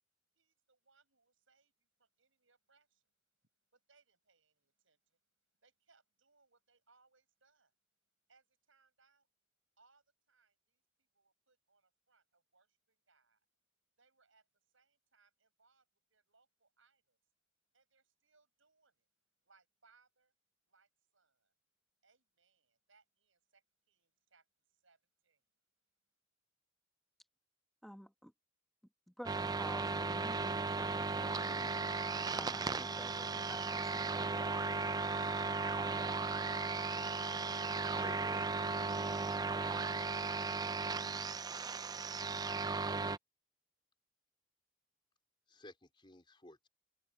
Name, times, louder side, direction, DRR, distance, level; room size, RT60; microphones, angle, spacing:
voice 1, 0.4-3.1 3.7-5.2 5.6-7.7 8.3-9.3 9.8-13.4 14.0-14.5 14.7-17.2 17.7-19.1 19.4-20.3 20.7-21.5 22.0-25.5, right 4 dB, 65° right, 7.9 m, -73 dB
voice 2, 27.8-28.3 29.1-31.9 32.3-34.2, equal, ahead, 1.2 m, -51 dB
sound 1, 29.3-43.2, right 4 dB, 20° right, 0.3 m, -36 dB
voice 3, 38.0-38.6 45.5-46.7, left 1 dB, 25° left, 4.1 m, -54 dB
head